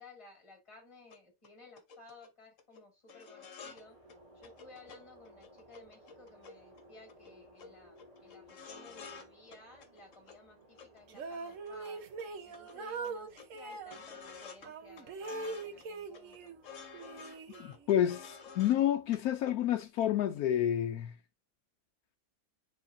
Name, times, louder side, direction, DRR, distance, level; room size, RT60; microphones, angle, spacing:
voice 1, 0.0-4.0 4.3-12.0 12.4-16.5, left 2 dB, 20° left, 2.1 m, -57 dB
sound 1, 1.1-1.2 1.4-1.5 1.8-2.3 2.6-2.8 3.1-3.8 4.1-4.2 4.4-5.0 5.2-6.8 7.1-7.3 7.6-7.7 8.0-9.3 9.5-10.4 10.8-11.9 12.2-12.3 12.5-14.7 15.0-15.8 16.1-18.8 19.1-19.2 19.5-20.1 20.3-20.4, left 5 dB, 60° left, 1.4 m, -51 dB
sound 2, 3.6-19.9, equal, 25° right, 2.9 m, -61 dB
sound 3, 11.1-14.0 14.6-16.6 16.9-18.0, right 3 dB, 60° right, 1.2 m, -42 dB
voice 2, 17.6-21.2, left 11 dB, 80° left, 1.1 m, -29 dB
9.8 x 3.9 x 2.6 m
omnidirectional pair, 1.6 m